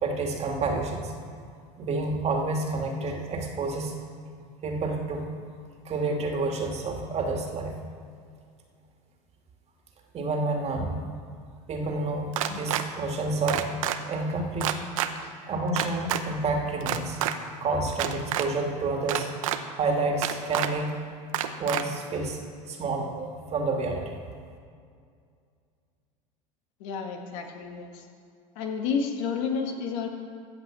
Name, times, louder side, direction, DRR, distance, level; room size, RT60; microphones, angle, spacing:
voice 1, 0.0-1.1 1.8-3.9 4.6-5.3 5.8-7.8 10.1-11.0 11.7-13.6 14.1-14.7 15.5-17.2 17.6-19.3 19.8-21.0 21.6-22.4 22.7-24.1, right 3 dB, 40° right, 1 dB, 2.3 m, -29 dB
sound 1, 12.3-12.8 13.5-14.0 14.6-15.1 15.8-16.2 16.8-17.3 17.9-18.5 19.1-19.6 20.2-20.7 21.3-21.8, right 12 dB, 85° right, 0.8 m, -27 dB
voice 2, 26.8-28.0 28.6-30.1, left 6 dB, 70° left, 3 dB, 1.9 m, -31 dB
15.0 x 5.8 x 7.7 m, 2.2 s
hypercardioid pair, 95°, 17 cm